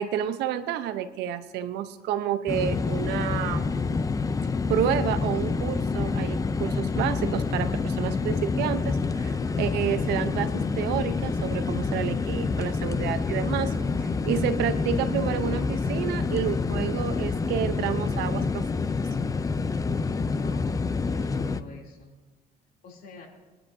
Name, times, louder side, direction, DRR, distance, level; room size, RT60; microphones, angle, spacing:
voice 1, 0.0-3.7 4.7-18.7, right 10 dB, 85° right, 11 dB, 0.8 m, -30 dB
sound 1, 2.5-21.6, left 4 dB, 20° left, 0.5 m, -27 dB
sound 2, 5.3-14.1, right 2 dB, 20° right, 1.6 m, -48 dB
voice 2, 20.4-22.1 22.8-23.3, left 4 dB, 60° left, -1 dB, 3.1 m, -47 dB
22.5 x 10.0 x 2.7 m, 1.2 s
cardioid pair, 110°, 17 cm